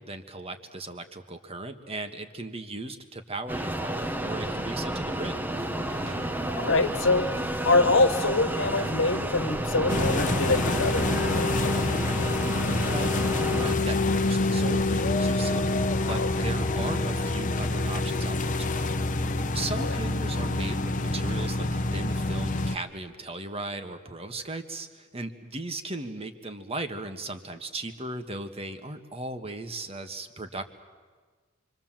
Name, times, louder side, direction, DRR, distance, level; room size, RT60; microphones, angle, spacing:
voice 1, 0.0-5.4 12.8-18.9 19.5-30.6, right 2 dB, 30° right, 8 dB, 1.6 m, -37 dB
sound 1, 3.5-13.7, right 1 dB, 10° right, 1.2 m, -31 dB
sound 2, 5.5-12.1, right 1 dB, 85° right, 1.9 m, -42 dB
voice 2, 6.6-7.4 7.6-11.8 16.1-16.3 19.8-20.0, left 3 dB, 70° left, 10 dB, 1.5 m, -25 dB
sound 3, 9.9-22.8, left 2 dB, 40° left, 1.0 m, -27 dB
27.5 x 24.5 x 7.5 m, 1.5 s
head